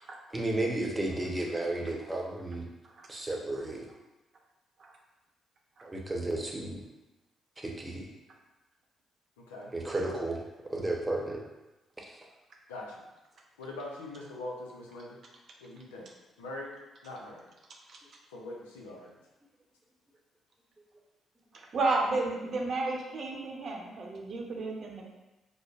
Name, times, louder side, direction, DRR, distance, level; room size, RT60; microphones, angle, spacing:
voice 1, 0.3-2.6 3.1-3.9 5.8-6.8 7.6-8.1 9.7-10.4 10.6-11.4 12.0-12.3, right 2 dB, 20° right, -1 dB, 0.8 m, -33 dB
voice 2, 9.4-9.7 10.1-10.2 12.7-13.0 13.6-15.2 15.6-16.1 16.4-17.4 18.3-19.1, left 2 dB, 85° left, -2 dB, 0.5 m, -42 dB
voice 3, 21.5-25.1, right 3 dB, 55° right, 0 dB, 0.7 m, -32 dB
5.0 x 2.0 x 2.4 m, 1.0 s
hypercardioid pair, 45°, 0 cm